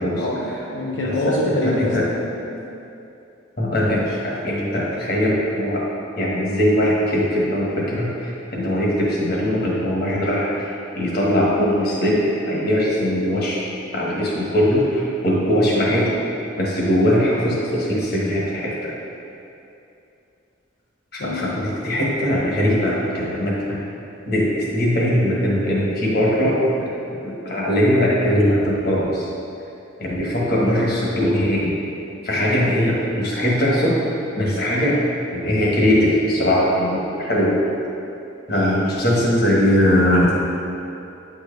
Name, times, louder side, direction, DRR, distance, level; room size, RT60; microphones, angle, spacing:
voice 1, 0.2-2.3 21.2-21.5, left 1 dB, 70° left, -3 dB, 0.6 m, -24 dB
voice 2, 1.4-2.1 3.6-5.8 6.2-13.6 13.9-16.1 16.6-18.9 21.1-23.8 24.3-26.9 27.2-29.3 30.0-31.7 32.2-34.0 34.4-35.0 35.3-37.6 38.5-40.4, equal, 55° left, -5 dB, 1.5 m, -20 dB
9.3 x 4.6 x 3.3 m, 2.7 s
head